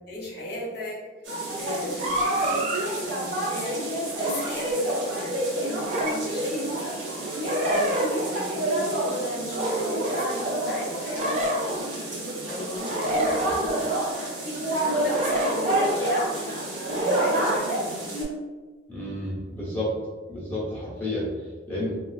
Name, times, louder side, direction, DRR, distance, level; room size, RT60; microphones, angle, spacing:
voice 1, 0.1-1.0 1.6-3.8 4.2-6.8 7.4-11.6 12.5-13.9 14.7-16.3 16.9-18.1, left 1 dB, 55° left, -5 dB, 0.7 m, -36 dB
sound 1, 1.3-18.2, right 1 dB, 70° right, 0.8 m, -28 dB
sound 2, 2.0-2.8 4.2-4.5 5.8-6.2 7.5-8.3 9.6-10.2 11.2-11.9 12.8-13.9 15.0-15.9 16.9-17.6, right 1 dB, 35° right, 0.4 m, -28 dB
voice 2, 18.9-20.0 20.3-21.9, left 1 dB, 10° left, -8 dB, 0.8 m, -31 dB
3.0 x 2.3 x 2.4 m, 1.4 s
head